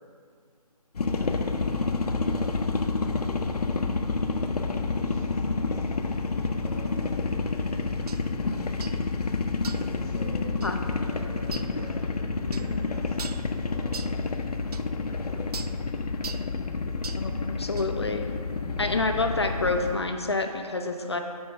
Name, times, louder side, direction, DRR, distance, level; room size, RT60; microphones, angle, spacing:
sound 1, 1.0-20.0, left 4 dB, 80° left, 0.7 m, -29 dB
voice 1, 1.1-3.7 4.5-8.0 10.0-10.5 11.0-14.3 14.8-15.9 16.9-17.5, right 1 dB, 25° right, -9 dB, 1.5 m, -47 dB
sound 2, 8.1-8.2 8.8-9.0 9.6-9.9 10.6-10.8 11.5-11.7 12.5-12.7 13.2-13.5 13.9-14.2 14.7-14.8 15.5-15.8 16.2-16.5 17.0-17.3 17.8-17.9, right 5 dB, 75° right, 0.4 m, -40 dB
voice 2, 17.2-18.3 18.8-21.2, left 3 dB, 45° left, 5 dB, 0.5 m, -28 dB
8.2 x 4.4 x 5.7 m, 2.1 s
hypercardioid pair, 175°, 20 cm